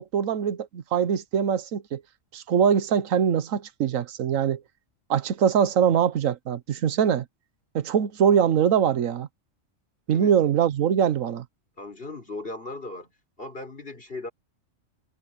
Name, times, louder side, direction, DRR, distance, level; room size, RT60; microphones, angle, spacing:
voice 1, 0.0-2.0 2.3-4.6 5.1-7.2 7.7-9.3 10.1-11.4, right 8 dB, 80° right, 1.3 m, -23 dB
voice 2, 11.8-13.1 13.4-14.3, left 2 dB, 45° left, 4.3 m, -37 dB
omnidirectional pair, 1.3 m